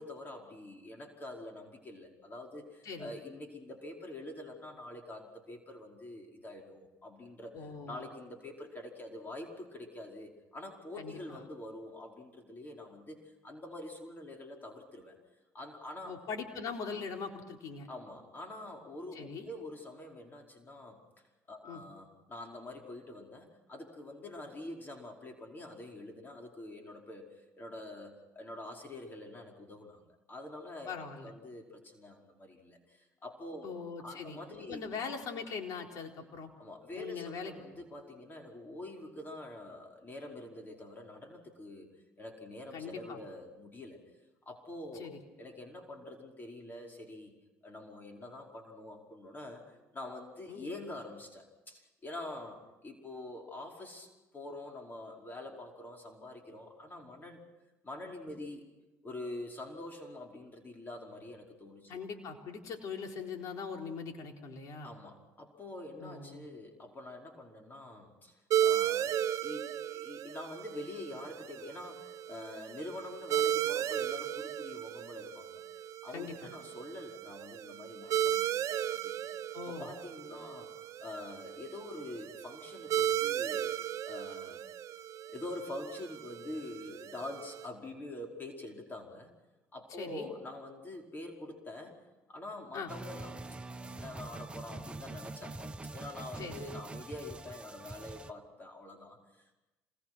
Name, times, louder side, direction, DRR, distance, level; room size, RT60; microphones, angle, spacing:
voice 1, 0.0-15.2 15.5-16.2 17.9-21.0 21.5-30.0 30.3-33.6 34.0-34.8 36.6-41.9 42.2-44.0 44.4-47.3 47.6-57.5 57.8-58.7 59.0-62.0 64.8-75.6 76.0-79.2 79.6-80.7 81.0-83.7 84.1-84.6 85.3-89.3 89.7-92.0 92.3-93.5 93.8-99.5, left 1 dB, 30° left, 1 dB, 5.0 m, -46 dB
voice 2, 7.5-8.1 11.0-11.4 16.0-17.9 19.1-19.5 21.6-21.8 30.9-31.3 33.6-34.4 34.7-36.5 37.0-37.6 42.7-43.2 44.9-45.2 50.5-50.7 61.9-64.9 66.0-66.5 76.1-76.5 79.5-79.9 90.0-90.3 92.7-92.9 96.4-96.6, left 5 dB, 65° left, 3 dB, 4.0 m, -41 dB
sound 1, 68.5-87.7, right 10 dB, 60° right, 0.8 m, -35 dB
sound 2, 92.9-98.3, right 2 dB, 15° right, 1.2 m, -44 dB
27.5 x 21.0 x 6.2 m, 1.1 s
supercardioid pair, 80°, 6 cm